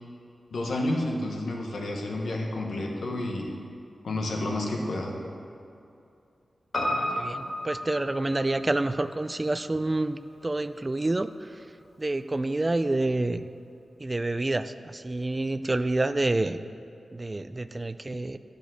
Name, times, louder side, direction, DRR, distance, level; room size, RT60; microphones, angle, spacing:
voice 1, 0.5-3.5 4.0-5.1, left 1 dB, 90° left, 0 dB, 1.3 m, -30 dB
Piano, 6.7-11.2 11.5-11.6, left 1 dB, 35° left, 2.1 m, -34 dB
voice 2, 6.8-11.5 12.0-13.4 14.0-16.6 17.1-18.4, right 2 dB, 25° right, 12 dB, 0.3 m, -28 dB
11.5 x 5.1 x 6.4 m, 2.6 s
wide cardioid pair, 120°, 0 cm